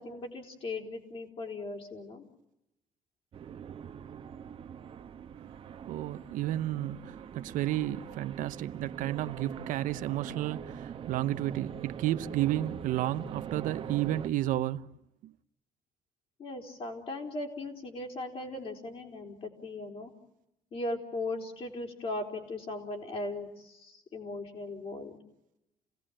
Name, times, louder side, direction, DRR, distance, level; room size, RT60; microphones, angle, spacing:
voice 1, 0.0-2.3 16.4-20.1 20.7-25.2, left 2 dB, 45° left, 4.4 m, -38 dB
sound 1, 3.3-14.3, right 8 dB, 45° right, 1.2 m, -43 dB
voice 2, 5.9-14.9 15.2-15.3, right 14 dB, 85° right, 0.8 m, -32 dB
29.0 x 18.0 x 8.9 m
cardioid pair, 140°, 13 cm